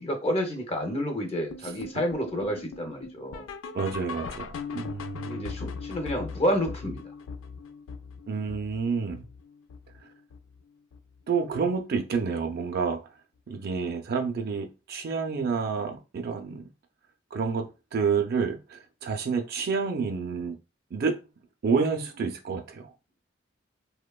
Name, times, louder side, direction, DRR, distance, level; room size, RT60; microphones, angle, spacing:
voice 1, 0.0-3.4 5.2-7.0, equal, 30° left, 0.5 m, -29 dB
sound 1, 1.5-10.6 10.9-11.2 11.5-11.6 12.1-12.2 12.7-12.8, left 5 dB, 90° left, 0.3 m, -40 dB
voice 2, 3.7-5.5 8.3-9.3 11.3-13.0 13.5-16.6 17.3-20.6 20.9-21.2 21.6-22.9, right 5 dB, 50° right, 0.4 m, -29 dB
2.9 x 2.1 x 2.2 m
head